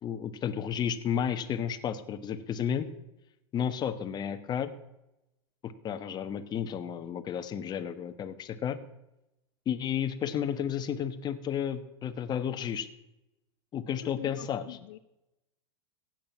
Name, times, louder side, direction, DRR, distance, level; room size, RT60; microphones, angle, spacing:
voice 1, 0.0-2.9 3.5-4.7 5.6-8.8 9.6-12.9 13.7-14.8, left 8 dB, 30° left, 9 dB, 1.3 m, -32 dB
voice 2, 14.0-15.0, left 16 dB, 60° left, 9 dB, 0.7 m, -45 dB
16.0 x 9.3 x 5.9 m, 0.90 s
hypercardioid pair, 110°, 14 cm